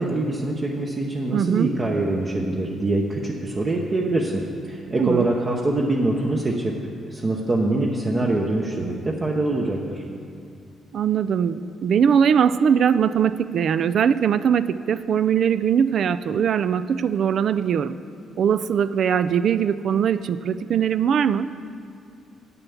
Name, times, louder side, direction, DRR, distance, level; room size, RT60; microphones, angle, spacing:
voice 1, 0.0-6.7 7.1-10.0, right 2 dB, 35° right, -1 dB, 0.9 m, -24 dB
voice 2, 1.3-1.7 5.0-5.3 10.9-18.0 18.4-21.5, right 8 dB, 65° right, 14 dB, 0.3 m, -21 dB
8.3 x 7.0 x 7.1 m, 2.4 s
cardioid pair, 90°, 0 cm